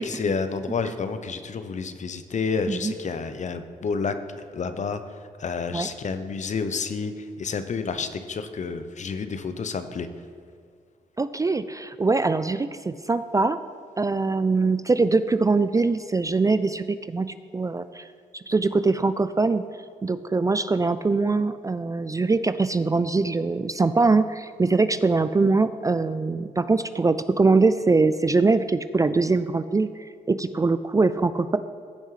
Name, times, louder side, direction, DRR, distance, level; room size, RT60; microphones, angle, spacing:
voice 1, 0.0-4.1 4.5-5.0 5.4-10.1, left 5 dB, 50° left, 10 dB, 0.7 m, -29 dB
voice 2, 11.2-13.6 14.0-17.3 17.5-18.1 18.3-19.7 20.0-31.6, right 3 dB, 20° right, 12 dB, 0.3 m, -22 dB
15.0 x 5.4 x 3.3 m, 2.2 s
supercardioid pair, 55°, 16 cm